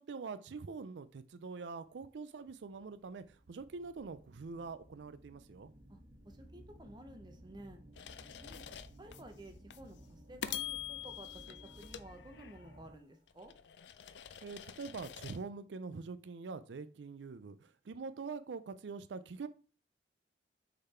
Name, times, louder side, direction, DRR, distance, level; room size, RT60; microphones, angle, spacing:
voice 1, 0.0-5.7 14.4-19.5, right 4 dB, 85° right, 12 dB, 0.4 m, -44 dB
sound 1, 1.9-2.0 2.5-13.2, right 1 dB, 55° right, 1.7 m, -57 dB
voice 2, 6.2-7.8 8.4-8.6 9.0-13.5, right 1 dB, 25° right, 6 dB, 0.9 m, -53 dB
sound 2, 8.0-9.2 9.7-9.9 10.4-12.8 13.3-15.4, left 10 dB, 85° left, 0.5 m, -45 dB
6.4 x 4.0 x 4.3 m, 0.39 s
head